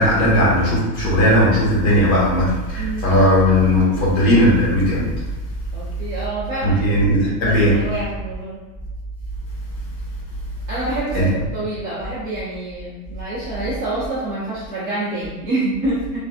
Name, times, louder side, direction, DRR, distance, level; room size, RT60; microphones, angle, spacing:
voice 1, 0.0-5.2 6.6-7.8 11.1-11.3, equal, 45° left, -6 dB, 1.4 m, -17 dB
voice 2, 2.8-3.2 5.7-8.6 10.7-16.2, right 2 dB, 20° right, -12 dB, 0.5 m, -27 dB
3.4 x 2.6 x 2.4 m, 1.1 s
supercardioid pair, 165°, 49 cm